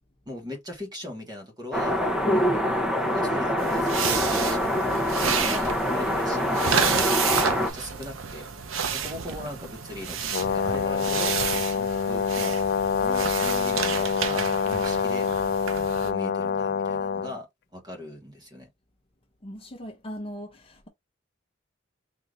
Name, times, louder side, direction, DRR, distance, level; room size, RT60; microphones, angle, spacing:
voice 1, 0.3-2.0 2.3-6.9 7.3-8.5 8.9-11.4 11.7-12.6 13.0-15.3 16.0-17.5 17.7-18.7, left 1 dB, 20° right, 1.2 m, -39 dB
sound 1, 1.7-7.7, equal, 5° right, 0.8 m, -25 dB
sound 2, 3.6-16.1, right 7 dB, 75° right, 0.7 m, -30 dB
Brass instrument, 10.3-17.3, left 6 dB, 55° left, 0.3 m, -26 dB
voice 2, 19.4-20.9, equal, 30° left, 0.8 m, -39 dB
3.7 x 2.7 x 3.1 m
head